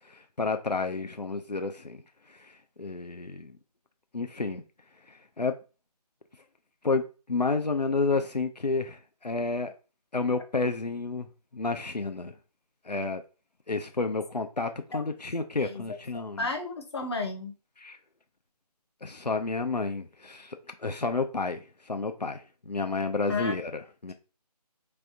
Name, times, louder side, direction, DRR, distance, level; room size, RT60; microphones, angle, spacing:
voice 1, 0.0-3.6 4.1-4.6 5.0-5.6 6.8-9.7 10.1-12.3 12.8-13.2 13.7-16.5 17.8-18.0 19.0-24.1, left 3 dB, 85° left, 0.7 m, -31 dB
voice 2, 16.1-17.5 23.3-23.6, left 3 dB, 40° left, 1.0 m, -33 dB
3.5 x 3.4 x 3.9 m
figure-of-eight pair, 155°, 21 cm